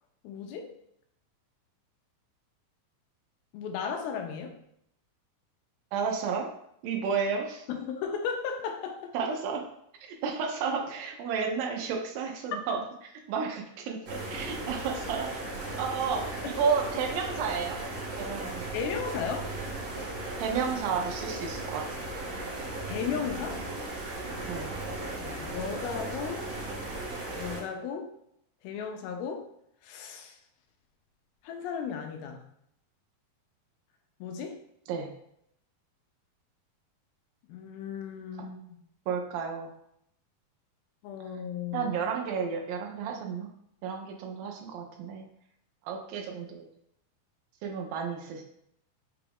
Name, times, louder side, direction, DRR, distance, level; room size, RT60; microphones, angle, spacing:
voice 1, 0.2-0.7 3.5-4.5 7.7-9.3 12.7-12.8 16.4-16.5 18.7-19.5 22.9-23.6 25.2-26.5 27.4-28.1 28.6-29.4 29.8-30.4 31.4-32.4 34.2-34.6 37.5-38.8 41.0-41.9, left 6 dB, 85° left, 4 dB, 2.4 m, -35 dB
voice 2, 5.9-6.5 6.8-7.6 9.1-9.6 10.0-12.8 13.3-15.3 15.8-17.8 18.2-18.6 20.4-22.1 24.5-24.7 34.9-35.1 39.1-39.7 41.7-43.5 43.8-45.2 45.9-46.7 47.6-48.4, right 6 dB, 80° right, 2 dB, 2.2 m, -32 dB
sound 1, 14.1-27.6, right 2 dB, 60° right, 1.7 m, -36 dB
6.0 x 2.3 x 3.4 m, 0.73 s
omnidirectional pair, 4.3 m